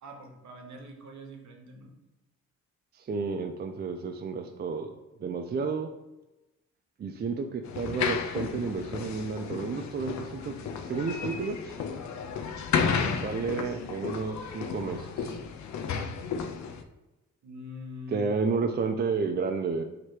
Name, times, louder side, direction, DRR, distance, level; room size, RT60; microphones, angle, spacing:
voice 1, 0.0-1.9 17.4-18.3, left 1 dB, 60° right, 3 dB, 0.9 m, -44 dB
voice 2, 3.0-4.9 5.2-5.9 7.0-10.5 10.8-11.7 13.2-15.4 18.1-19.8, right 4 dB, 30° right, 5 dB, 0.4 m, -31 dB
sound 1, 7.7-16.8, left 6 dB, 60° left, 0.5 m, -33 dB
3.0 x 2.9 x 4.6 m, 1.0 s
supercardioid pair, 55°, 32 cm